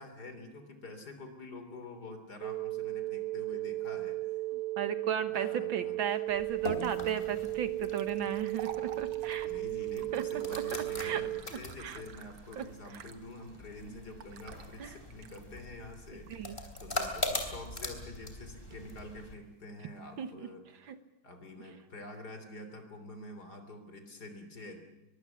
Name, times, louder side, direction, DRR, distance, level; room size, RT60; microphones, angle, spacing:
voice 1, 0.0-4.2 5.3-6.0 9.4-20.9 21.2-24.8, left 2 dB, 50° left, 7 dB, 3.9 m, -47 dB
sound 1, 2.4-11.4, right 17 dB, 45° right, 0.7 m, -35 dB
voice 2, 4.5-9.5 10.1-10.2 11.0-11.2 11.8-12.0 12.6-12.7 14.8-14.9 16.3-16.6 20.2-20.3 20.8-21.0, right 8 dB, 70° right, 11 dB, 2.0 m, -35 dB
sound 2, 6.3-19.3, left 2 dB, 25° left, 3.4 m, -42 dB
sound 3, 6.9-20.3, right 8 dB, 85° right, 2.1 m, -54 dB
23.5 x 22.5 x 7.1 m, 0.97 s
omnidirectional pair, 2.3 m